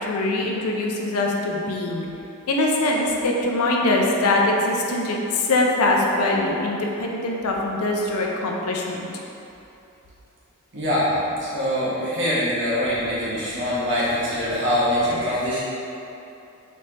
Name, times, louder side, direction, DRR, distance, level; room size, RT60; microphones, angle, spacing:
voice 1, 0.0-2.1 2.5-9.1, left 2 dB, 85° left, -1 dB, 0.5 m, -22 dB
voice 2, 10.7-15.6, equal, 60° right, -9 dB, 1.2 m, -23 dB
4.1 x 3.3 x 2.8 m, 2.8 s
head